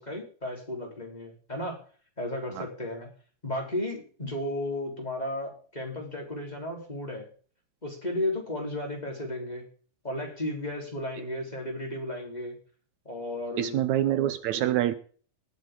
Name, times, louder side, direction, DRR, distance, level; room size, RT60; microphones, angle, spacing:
voice 1, 0.0-1.8 2.2-3.1 3.4-7.3 7.8-9.6 10.0-12.6 13.1-13.8, left 1 dB, 15° left, 0 dB, 3.8 m, -34 dB
voice 2, 13.6-14.9, right 12 dB, 75° right, 12 dB, 2.1 m, -26 dB
19.0 x 9.0 x 3.8 m, 0.42 s
omnidirectional pair, 3.4 m